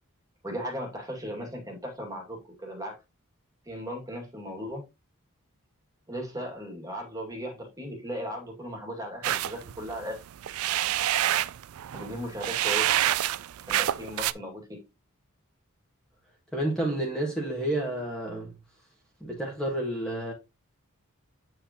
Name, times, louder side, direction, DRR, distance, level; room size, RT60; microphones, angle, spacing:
voice 1, 0.4-2.9 3.7-4.8 6.1-10.2 11.9-12.9 13.7-14.8, equal, 15° right, 2.1 m, -37 dB
sound 1, 9.2-14.3, right 13 dB, 70° right, 0.4 m, -27 dB
voice 2, 16.5-18.5 19.2-20.3, right 1 dB, 5° left, 1.6 m, -30 dB
8.8 x 4.9 x 2.9 m
head